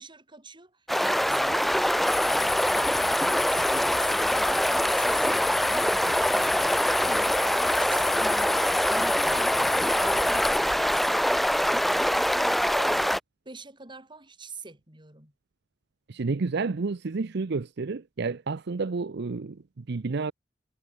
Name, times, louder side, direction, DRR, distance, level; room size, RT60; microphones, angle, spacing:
voice 1, 0.0-1.7 2.0-5.9 6.3-13.1 13.5-15.3, right 3 dB, 25° right, 7.2 m, -45 dB
sound 1, 0.9-13.2, equal, ahead, 0.5 m, -24 dB
sound 2, 2.1-10.6, left 9 dB, 35° left, 1.7 m, -34 dB
voice 2, 16.1-20.3, right 4 dB, 60° right, 0.6 m, -30 dB
head